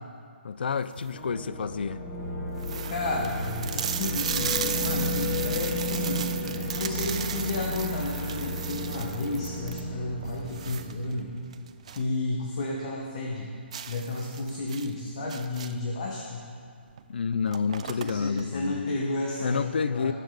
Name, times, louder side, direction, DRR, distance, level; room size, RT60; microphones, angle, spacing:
voice 1, 0.4-2.0 17.1-18.8 19.4-20.1, left 6 dB, 55° left, 14 dB, 0.4 m, -29 dB
sound 1, 0.7-1.2 1.9-2.0 2.2-2.3 2.6-12.1 12.5-12.6 13.0-13.1 13.7-15.9 16.9-17.0 17.3-18.4, right 8 dB, 35° right, 0.3 m, -35 dB
sound 2, 1.1-11.3, left 1 dB, 15° left, 2.4 m, -33 dB
voice 2, 2.9-6.3 6.7-11.3 11.9-13.5 13.9-16.4 17.8-20.1, left 2 dB, 35° left, -1 dB, 1.1 m, -32 dB
18.5 x 6.7 x 3.9 m, 2.1 s
hypercardioid pair, 170°, 6 cm